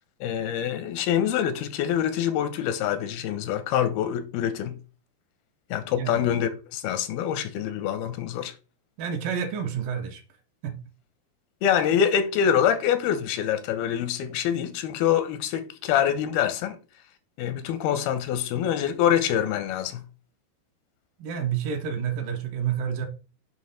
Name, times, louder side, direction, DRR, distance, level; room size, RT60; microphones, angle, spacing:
voice 1, 0.2-4.8 5.7-8.5 11.6-16.8 17.4-20.0, left 9 dB, 90° left, 2.6 m, -25 dB
voice 2, 9.0-10.2 10.6-10.8 21.2-23.1, right 8 dB, 70° right, 2.4 m, -29 dB
7.6 x 3.1 x 5.7 m
omnidirectional pair, 4.4 m